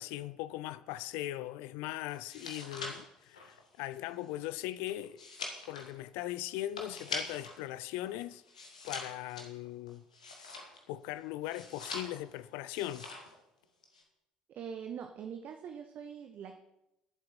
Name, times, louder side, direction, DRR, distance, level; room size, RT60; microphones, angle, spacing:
voice 1, 0.0-5.2 5.7-8.4 8.8-10.0 10.9-13.1, left 14 dB, 60° left, 0.5 m, -39 dB
sound 1, 2.1-7.6 7.9-11.0 11.5-12.4 12.7-13.4 13.6-14.0, left 3 dB, 80° left, 1.6 m, -44 dB
voice 2, 14.5-16.5, right 7 dB, 50° right, 0.9 m, -43 dB
21.5 x 7.6 x 4.3 m
figure-of-eight pair, 50°, 4 cm